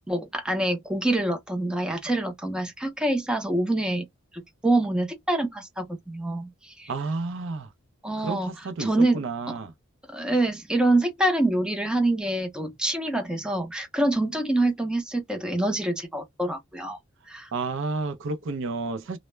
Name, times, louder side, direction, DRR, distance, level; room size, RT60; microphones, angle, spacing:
voice 1, 0.1-4.1 4.6-6.9 8.0-9.6 10.1-17.0 17.3-17.5, right 1 dB, 5° right, 0.5 m, -26 dB
voice 2, 6.9-7.7 8.2-9.7 17.5-19.2, right 3 dB, 65° right, 0.5 m, -31 dB
2.1 x 2.0 x 3.1 m
head